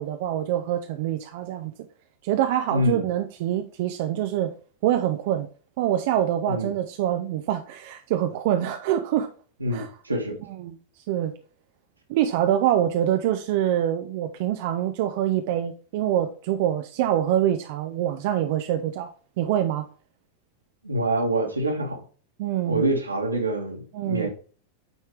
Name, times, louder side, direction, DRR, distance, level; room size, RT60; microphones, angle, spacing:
voice 1, 0.0-1.7 2.2-4.5 4.8-5.5 5.8-9.3 9.7-9.9 10.5-10.8 11.1-11.3 12.1-19.9 22.4-22.8 23.9-24.3, right 11 dB, 50° right, 0.7 m, -25 dB
voice 2, 2.7-3.0 6.5-6.7 9.6-10.4 20.8-22.0 22.7-24.3, right 1 dB, 80° right, 1.9 m, -26 dB
9.1 x 4.4 x 3.4 m
figure-of-eight pair, 90°, 0 cm